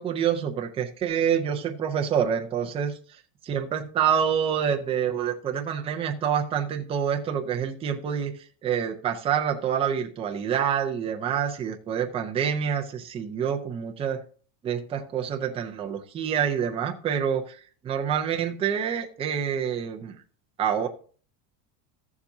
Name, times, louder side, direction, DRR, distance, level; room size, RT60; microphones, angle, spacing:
voice 1, 0.0-2.9 3.4-8.3 8.6-14.2 14.6-20.2 20.6-20.9, right 8 dB, 15° right, 4 dB, 0.4 m, -27 dB
14.0 x 7.2 x 2.7 m, 0.43 s
cardioid pair, 165°, 49 cm